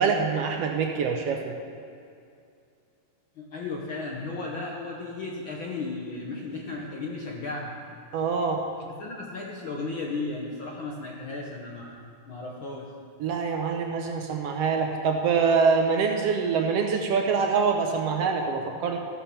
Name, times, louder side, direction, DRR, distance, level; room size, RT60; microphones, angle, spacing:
voice 1, 0.0-1.5 8.1-8.6 13.2-19.0, right 5 dB, 70° right, 3 dB, 1.6 m, -25 dB
voice 2, 3.4-7.8 8.9-12.0 12.3-12.9, left 3 dB, 65° left, -2 dB, 1.3 m, -35 dB
14.5 x 7.2 x 5.6 m, 2.4 s
omnidirectional pair, 3.4 m